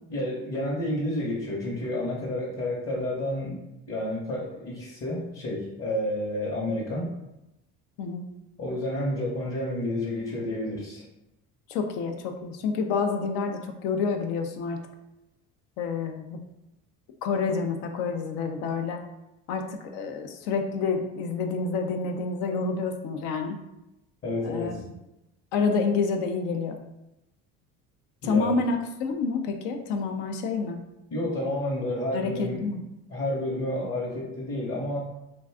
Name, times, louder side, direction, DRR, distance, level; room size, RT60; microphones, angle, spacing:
voice 1, 0.1-3.6 3.9-7.1 8.6-11.0 24.2-24.8 28.2-28.6 31.1-32.7 33.1-35.0, left 1 dB, 40° left, -4 dB, 0.9 m, -30 dB
voice 2, 11.7-14.8 15.8-16.4 17.2-19.0 19.5-23.6 24.4-24.7 25.5-26.8 28.2-30.8 32.1-32.8, left 4 dB, 80° left, 5 dB, 0.5 m, -28 dB
2.5 x 2.2 x 3.4 m, 0.92 s
supercardioid pair, 75°, 38 cm